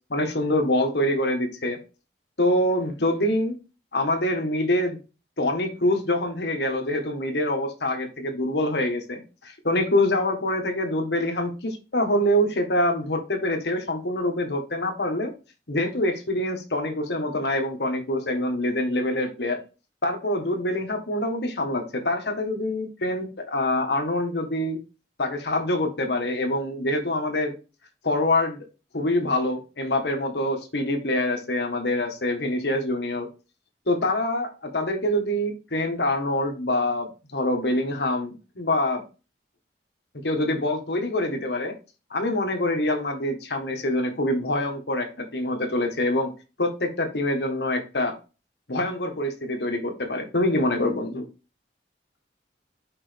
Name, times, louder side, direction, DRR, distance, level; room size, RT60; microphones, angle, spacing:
voice 1, 0.1-1.8 2.4-3.6 3.9-5.0 5.4-15.3 15.7-19.6 20.0-24.8 25.2-27.5 28.0-28.7 28.9-33.3 33.9-39.0 40.2-41.7 42.1-46.3 46.6-48.2 48.7-51.2, left 1 dB, 75° left, 5 dB, 1.5 m, -25 dB
6.2 x 5.4 x 3.4 m, 0.31 s
head